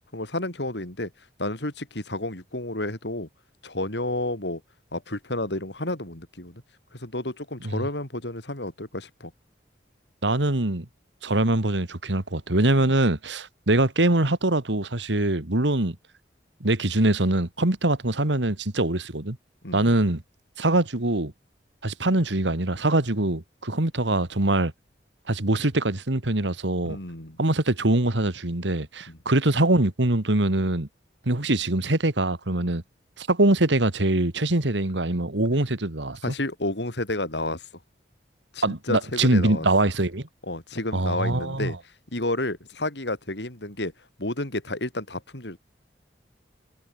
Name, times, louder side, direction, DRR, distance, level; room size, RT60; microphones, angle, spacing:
voice 1, 0.1-1.1 1.4-3.3 3.6-4.6 4.9-6.6 6.9-9.3 19.6-20.0 26.8-27.4 29.1-29.2 36.2-37.7 38.5-39.7 40.4-41.8 42.1-43.9 44.2-45.6, left 2 dB, 75° left, 4.4 m, -31 dB
voice 2, 10.2-10.9 11.2-16.0 16.6-19.4 19.7-20.2 20.6-21.3 21.8-24.7 25.3-27.0 27.4-30.9 31.3-32.8 33.2-36.3 38.6-40.3 40.9-41.7, right 2 dB, 85° right, 2.1 m, -23 dB
head